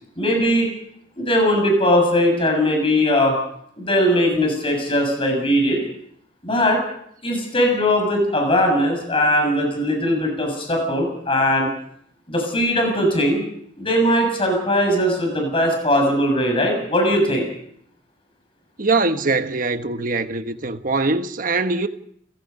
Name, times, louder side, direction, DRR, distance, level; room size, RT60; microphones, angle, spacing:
voice 1, 0.2-0.7 1.2-3.4 3.8-5.9 6.4-6.8 7.2-11.7 12.3-13.4 13.8-17.5, equal, 30° left, 7.1 m, -19 dB
voice 2, 18.8-21.9, right 3 dB, 50° right, 1.3 m, -22 dB
29.5 x 17.0 x 5.4 m
head